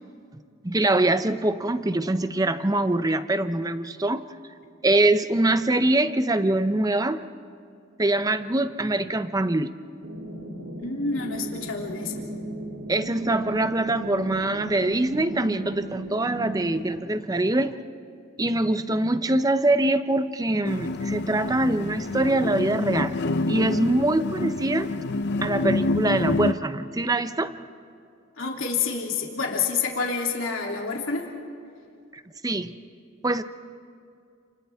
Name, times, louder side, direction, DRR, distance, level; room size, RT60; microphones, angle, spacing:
voice 1, 0.6-4.3 4.8-7.2 8.0-9.7 12.9-17.8 18.4-23.2 23.5-24.9 25.4-27.5 32.1-32.8 33.2-33.4, right 2 dB, 20° right, 11 dB, 0.7 m, -24 dB
sound 1, 10.0-17.0, right 2 dB, 70° right, 2.7 m, -37 dB
voice 2, 10.8-12.3 28.4-31.3, left 5 dB, 75° left, -1 dB, 3.0 m, -28 dB
sound 2, 20.6-26.5, left 2 dB, 55° left, 0.6 m, -27 dB
30.0 x 28.5 x 3.6 m, 2.3 s
head